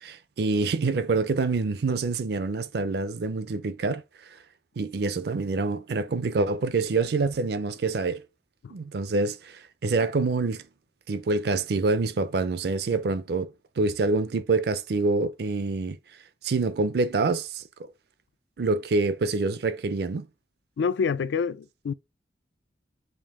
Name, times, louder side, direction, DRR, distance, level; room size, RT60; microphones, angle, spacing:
voice 1, 0.0-4.0 4.8-8.2 8.7-10.6 11.1-16.0 16.4-17.9 18.6-20.3, right 3 dB, 60° right, 0.4 m, -26 dB
voice 2, 20.8-21.9, left 5 dB, 80° left, 0.3 m, -27 dB
5.3 x 2.5 x 3.5 m
head